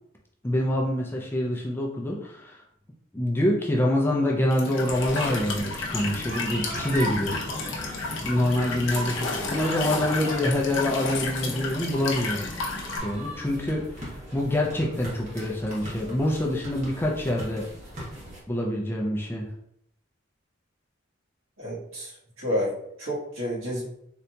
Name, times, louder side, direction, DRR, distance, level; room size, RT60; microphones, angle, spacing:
voice 1, 0.4-2.6 3.1-7.4 8.2-12.5 13.0-17.7 18.5-19.5, left 1 dB, 10° left, -1 dB, 0.4 m, -26 dB
Walk footsteps / Chirp tweet / Stream, 4.5-13.0, left 3 dB, 65° left, 0.6 m, -32 dB
sound 1, 4.9-18.4, right 1 dB, 35° right, 1.0 m, -39 dB
voice 2, 21.6-22.1 22.4-23.9, equal, 85° right, -6 dB, 1.3 m, -30 dB
3.8 x 2.8 x 2.2 m, 0.75 s
head